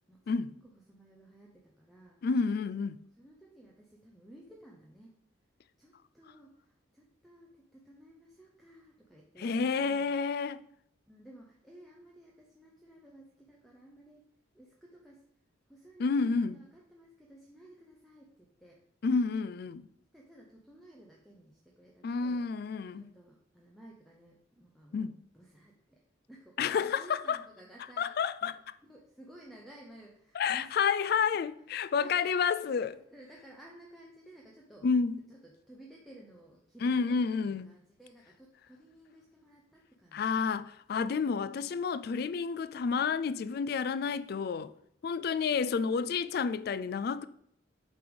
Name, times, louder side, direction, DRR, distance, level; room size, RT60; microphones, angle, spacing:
voice 1, 0.1-2.3 2.8-2.9 3.2-5.2 5.8-10.1 11.1-14.3 14.5-15.2 15.7-18.8 20.1-22.4 22.9-26.0 26.3-28.1 28.4-28.5 28.8-30.9 31.3-31.4 31.9-34.9 35.3-40.5 41.4-41.8, right 1 dB, ahead, 0.7 m, -55 dB
voice 2, 2.2-3.0 9.4-10.6 16.0-16.6 19.0-19.9 22.0-23.1 24.9-25.2 26.6-27.4 28.0-28.5 30.3-32.9 34.8-35.2 36.8-37.7 40.1-44.7 45.0-47.3, left 5 dB, 50° left, 0.3 m, -30 dB
7.9 x 3.5 x 5.1 m
head